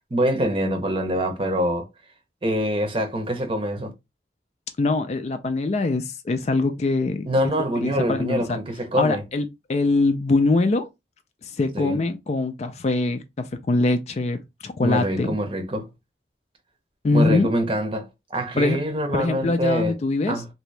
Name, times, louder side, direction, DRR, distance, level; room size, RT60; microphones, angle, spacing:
voice 1, 0.1-1.9 2.4-3.9 7.2-9.2 11.7-12.0 14.8-15.9 17.1-20.0 20.3-20.5, equal, 30° right, 0.7 m, -25 dB
voice 2, 4.8-7.3 7.8-8.6 9.0-10.9 11.4-15.3 17.0-17.5 18.6-18.8 19.1-20.4, left 3 dB, 40° left, 0.4 m, -23 dB
2.9 x 2.7 x 3.2 m
head